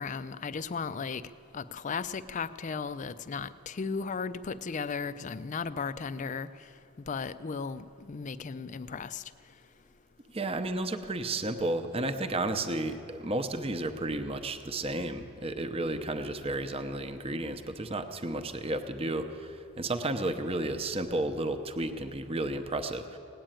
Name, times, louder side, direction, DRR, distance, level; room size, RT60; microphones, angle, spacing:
voice 1, 0.0-6.7 7.1-9.3, left 5 dB, 35° left, 15 dB, 0.4 m, -36 dB
voice 2, 10.3-23.2, right 2 dB, 25° right, 7 dB, 0.7 m, -32 dB
18.0 x 8.9 x 8.9 m, 2.7 s
head